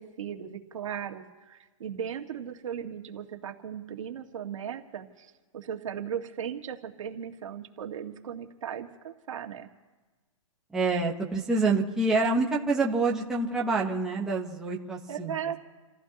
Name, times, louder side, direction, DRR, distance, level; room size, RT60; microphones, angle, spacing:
voice 1, 0.0-9.7 15.1-15.6, right 8 dB, 70° right, 3 dB, 1.9 m, -37 dB
voice 2, 10.7-15.3, right 3 dB, 5° right, -4 dB, 1.1 m, -27 dB
30.0 x 15.0 x 3.0 m, 1.3 s
hypercardioid pair, 160°, 17 cm